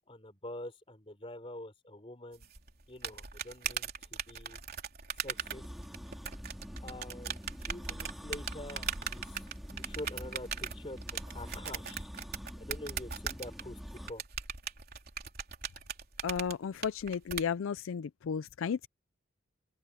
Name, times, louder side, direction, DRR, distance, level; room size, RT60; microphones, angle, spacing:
voice 1, 0.1-2.5 2.9-4.6 5.2-5.6 6.8-9.4 9.7-11.0 11.3-12.0 12.6-14.2, left 1 dB, 25° left, 4.2 m, -46 dB
sound 1, 2.4-17.4, right 7 dB, 45° right, 3.8 m, -39 dB
sound 2, 5.2-14.1, equal, ahead, 3.2 m, -46 dB
voice 2, 16.2-18.9, left 6 dB, 75° left, 0.4 m, -34 dB
open air
head